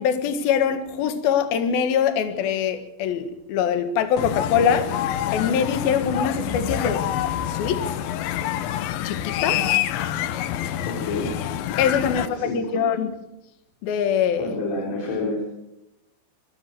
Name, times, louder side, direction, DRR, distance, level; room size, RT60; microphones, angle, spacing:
voice 1, 0.0-4.9 5.3-7.0 7.5-7.8 9.0-9.6 11.8-13.1 13.8-14.5, left 7 dB, 60° left, 9 dB, 3.1 m, -23 dB
sound 1, 4.2-12.3, left 11 dB, 85° left, 2.0 m, -27 dB
voice 2, 10.8-11.4 12.0-12.8 14.4-15.5, left 2 dB, 40° left, -2 dB, 4.9 m, -29 dB
24.0 x 14.5 x 7.7 m, 0.92 s
omnidirectional pair, 5.5 m